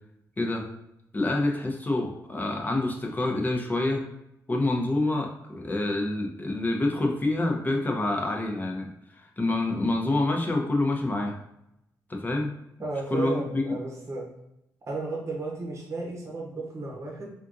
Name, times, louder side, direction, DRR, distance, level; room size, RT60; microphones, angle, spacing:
voice 1, 0.4-0.7 1.1-4.0 4.5-11.4 12.1-12.5 13.1-13.7, left 2 dB, 25° left, 1 dB, 0.7 m, -27 dB
voice 2, 12.8-14.3 14.9-17.3, right 3 dB, 45° right, -2 dB, 0.9 m, -33 dB
3.5 x 2.5 x 2.5 m, 0.83 s
cardioid pair, 75°, 7 cm